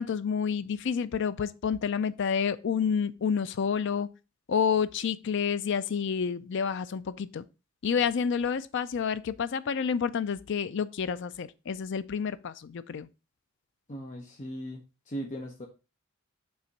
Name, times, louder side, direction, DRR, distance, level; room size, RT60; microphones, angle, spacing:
voice 1, 0.0-4.1 4.5-7.4 7.8-13.1, left 6 dB, 55° left, 0.4 m, -29 dB
voice 2, 13.9-15.7, equal, 35° left, 0.8 m, -38 dB
5.6 x 3.4 x 5.2 m
head